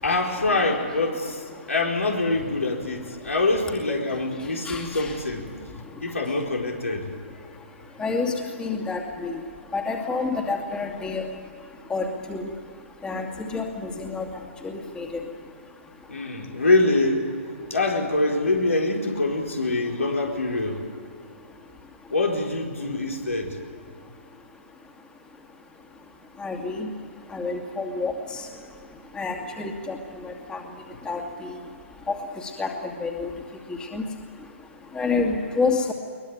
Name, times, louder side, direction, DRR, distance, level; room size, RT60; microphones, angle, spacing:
voice 1, 0.0-5.5 6.0-7.5 7.8-7.9 16.1-17.3 17.7-20.8 22.1-23.6, left 2 dB, 85° left, 0 dB, 4.6 m, -25 dB
voice 2, 4.7-5.1 8.0-8.3 8.6-9.3 9.7-11.2 11.9-12.5 13.0-14.3 14.6-15.2 26.4-26.9 27.3-28.1 29.2-30.0 30.2-30.6 31.1-31.2 32.1-32.2 32.6-32.7 33.0-33.3 33.9-34.0 34.9-35.9, left 4 dB, 10° left, 1 dB, 2.5 m, -28 dB
22.0 x 21.0 x 9.1 m, 2.2 s
figure-of-eight pair, 130°, 7 cm